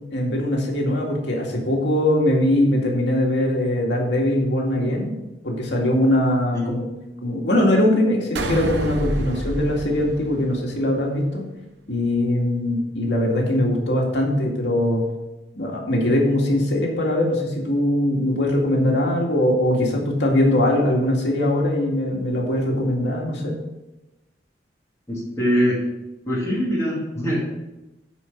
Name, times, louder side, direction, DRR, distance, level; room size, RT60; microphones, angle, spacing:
voice 1, 0.1-5.1 5.4-6.8 7.2-11.4 11.9-15.0 15.6-23.6, left 1 dB, 80° left, -1 dB, 2.2 m, -21 dB
sound 1, 8.4-10.9, right 1 dB, 85° right, 0.9 m, -28 dB
voice 2, 25.1-25.8 26.3-27.4, equal, 15° left, -7 dB, 2.6 m, -23 dB
10.5 x 4.7 x 5.8 m, 1.0 s
head